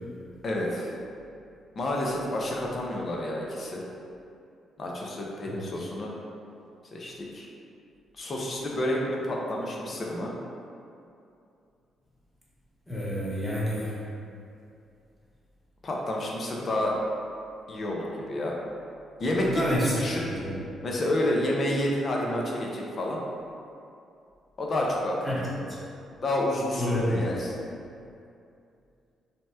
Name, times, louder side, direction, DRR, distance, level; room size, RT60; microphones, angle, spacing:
voice 1, 0.4-0.9 1.8-3.8 4.8-6.1 6.9-7.5 8.2-10.3 15.8-17.0 17.7-18.6 19.2-20.3 20.8-23.2 24.6-25.4 26.2-27.5, left 1 dB, 45° left, -2 dB, 0.5 m, -29 dB
voice 2, 12.9-13.9 19.4-20.6 25.2-25.7 26.8-27.2, equal, 20° left, -7 dB, 1.0 m, -29 dB
2.8 x 2.1 x 3.3 m, 2.6 s
supercardioid pair, 65°, 0 cm